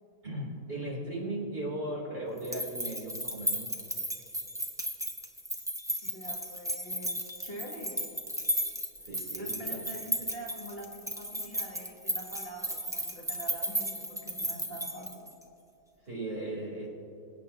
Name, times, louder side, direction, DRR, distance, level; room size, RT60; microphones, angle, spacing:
voice 1, 0.2-3.7 9.0-9.8 16.0-16.9, right 1 dB, 35° right, -4 dB, 3.4 m, -37 dB
sound 1, 2.4-15.4, equal, 5° right, 0.6 m, -34 dB
voice 2, 6.0-8.2 9.3-15.3, right 1 dB, 40° left, -2 dB, 1.5 m, -44 dB
26.5 x 8.9 x 2.8 m, 2.8 s
omnidirectional pair, 1.7 m